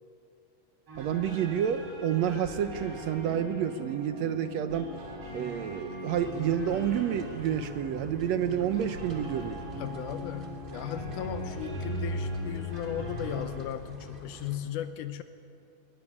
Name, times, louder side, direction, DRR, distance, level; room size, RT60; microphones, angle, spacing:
sound 1, 0.9-13.5, equal, 45° right, 4.9 m, -39 dB
voice 1, 1.0-4.9 5.3-9.6, right 9 dB, 70° right, 10 dB, 1.8 m, -29 dB
sound 2, 6.1-14.6, right 1 dB, 15° right, 2.6 m, -47 dB
voice 2, 9.8-15.2, left 11 dB, 85° left, 10 dB, 2.3 m, -36 dB
22.0 x 20.5 x 9.8 m, 2.6 s
omnidirectional pair, 3.6 m